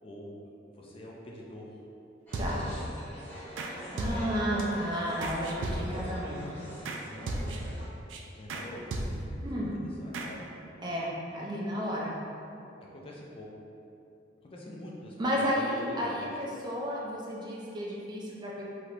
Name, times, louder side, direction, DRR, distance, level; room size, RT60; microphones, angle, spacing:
voice 1, 0.0-0.3 0.7-1.9 2.3-2.8 5.9-6.0 6.4-7.5 8.3-10.4 12.9-13.5 14.4-16.2, equal, 30° left, -3 dB, 0.4 m, -46 dB
sound 1, 2.3-7.9, equal, 10° left, 1.0 m, -44 dB
sound 2, 2.3-2.9 3.6-3.7 4.0-4.6 5.2-6.2 6.9-7.0 7.3-7.8 8.1-8.2 8.5-8.6 8.9-9.4 10.1-10.3, right 1 dB, 85° right, 0.3 m, -34 dB
voice 2, 2.4-2.7 3.6-6.7 9.4-9.8 10.8-12.2 15.2-18.6, equal, 25° right, -4 dB, 0.5 m, -32 dB
3.3 x 2.9 x 2.5 m, 2.7 s
head